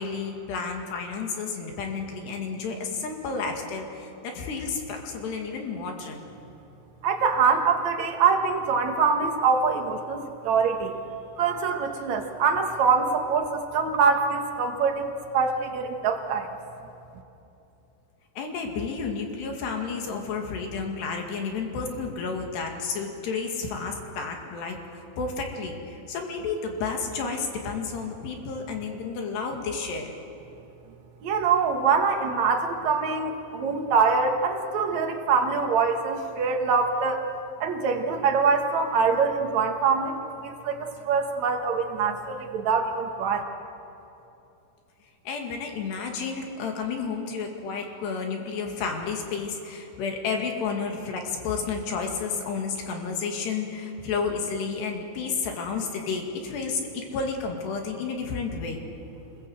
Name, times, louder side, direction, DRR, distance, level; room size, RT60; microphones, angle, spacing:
voice 1, 0.0-6.2 18.4-30.1 45.3-58.8, left 5 dB, 60° left, 2 dB, 4.1 m, -31 dB
voice 2, 7.0-10.9 11.4-16.5 31.2-37.3 37.6-43.4, right 5 dB, 75° right, 3 dB, 1.6 m, -24 dB
26.5 x 21.5 x 7.9 m, 2.9 s
omnidirectional pair, 5.7 m